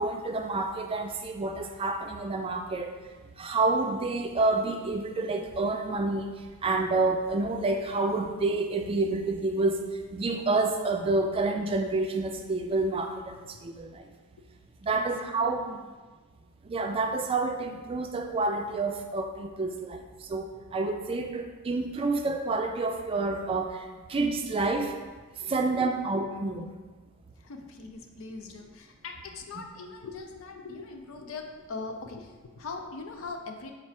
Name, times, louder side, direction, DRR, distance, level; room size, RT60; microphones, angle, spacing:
voice 1, 0.0-2.9 3.4-6.3 6.6-14.0 14.8-15.7 16.7-20.0 20.3-23.7 24.1-24.9 25.5-26.7 29.6-29.7, right 3 dB, 25° right, 4 dB, 0.3 m, -28 dB
voice 2, 15.2-15.9 25.4-25.9 27.4-33.7, left 4 dB, 70° left, 4 dB, 0.5 m, -41 dB
4.5 x 2.4 x 4.3 m, 1.3 s
head